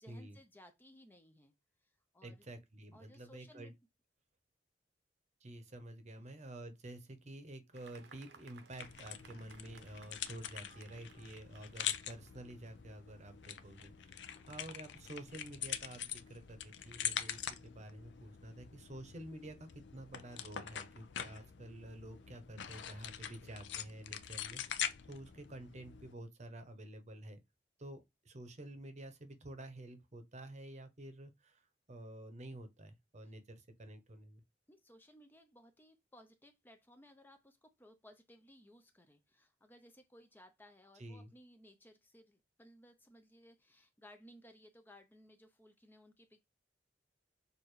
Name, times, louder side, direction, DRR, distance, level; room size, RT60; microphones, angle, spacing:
voice 1, 0.0-1.5 1.8-2.5 2.9-3.7 6.2-6.3 14.2-14.5 33.2-33.3 34.7-46.5, equal, 10° left, 0.5 m, -61 dB
voice 2, 2.2-3.7 5.4-27.4 27.8-34.4 41.0-41.3, right 1 dB, 40° right, 0.8 m, -50 dB
Fireworks, 7.7-13.5, right 4 dB, 75° right, 0.8 m, -61 dB
sound 1, 8.8-26.1, left 9 dB, 85° left, 0.5 m, -44 dB
6.6 x 2.6 x 3.1 m
head